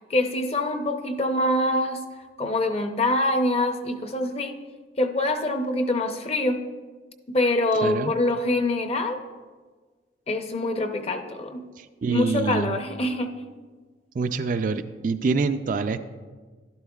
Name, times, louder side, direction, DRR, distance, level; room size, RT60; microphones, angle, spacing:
voice 1, 0.1-2.0 2.4-4.6 5.0-6.6 7.3-9.2 10.3-11.6 12.1-13.4, left 1 dB, 35° left, 6 dB, 0.6 m, -25 dB
voice 2, 7.8-8.1 11.8-12.8 14.1-16.0, right 4 dB, 45° right, 9 dB, 0.3 m, -26 dB
12.0 x 11.5 x 2.3 m, 1.4 s
head